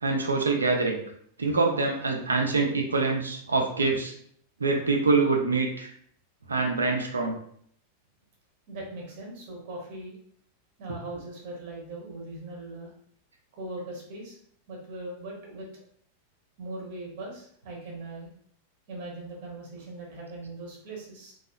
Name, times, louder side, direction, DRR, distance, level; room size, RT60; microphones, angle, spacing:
voice 1, 0.0-1.0 1.4-4.1 4.6-5.9 6.5-7.4, right 3 dB, 75° right, 2 dB, 0.4 m, -25 dB
voice 2, 8.7-10.2 10.8-12.9 13.6-14.4 14.7-15.8 16.6-18.3 18.9-21.3, right 2 dB, 50° right, -1 dB, 0.9 m, -40 dB
2.6 x 2.3 x 2.2 m, 0.63 s
figure-of-eight pair, 90°, 0 cm